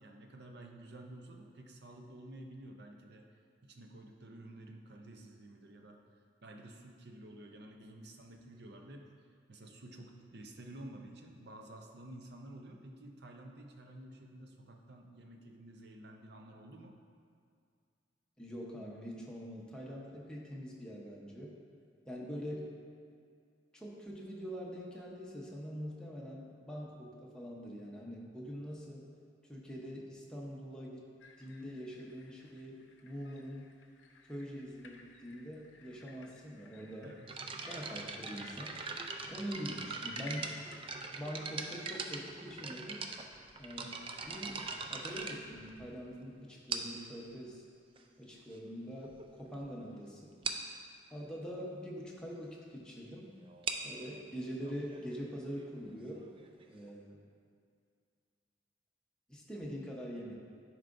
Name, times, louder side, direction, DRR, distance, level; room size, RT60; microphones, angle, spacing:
voice 1, 0.0-3.2 3.6-6.0 6.4-9.2 9.5-16.9 37.0-37.3, right 1 dB, 60° right, 3 dB, 0.7 m, -51 dB
voice 2, 18.4-21.5 22.1-22.7 23.7-29.0 29.5-31.0 31.4-33.7 34.3-37.1 37.7-38.8 39.3-40.5 41.1-43.0 43.6-44.6 44.9-47.6 48.2-50.3 51.1-53.3 53.8-56.2 56.7-57.2 59.3-60.4, equal, 5° left, -4 dB, 0.9 m, -44 dB
sound 1, 31.2-41.1, left 3 dB, 85° left, 0.6 m, -57 dB
sound 2, 37.3-46.1 46.7-47.1 48.0-48.1 48.7-48.8 49.0-49.2 49.6-49.7 49.9-50.0 50.4-50.7 53.4-56.9, right 4 dB, 30° right, 0.4 m, -42 dB
11.0 x 4.7 x 2.6 m, 2.3 s
head